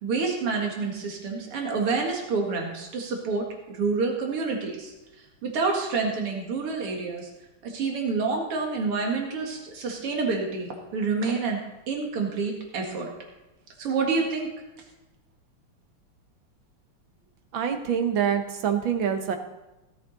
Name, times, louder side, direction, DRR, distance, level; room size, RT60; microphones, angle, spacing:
voice 1, 0.0-4.9 5.4-7.3 7.6-11.6 11.9-13.1 13.8-14.5, right 4 dB, 85° right, 1 dB, 2.8 m, -28 dB
voice 2, 17.5-19.4, right 8 dB, 65° right, 6 dB, 1.9 m, -25 dB
17.0 x 8.4 x 4.0 m, 1.0 s
omnidirectional pair, 2.4 m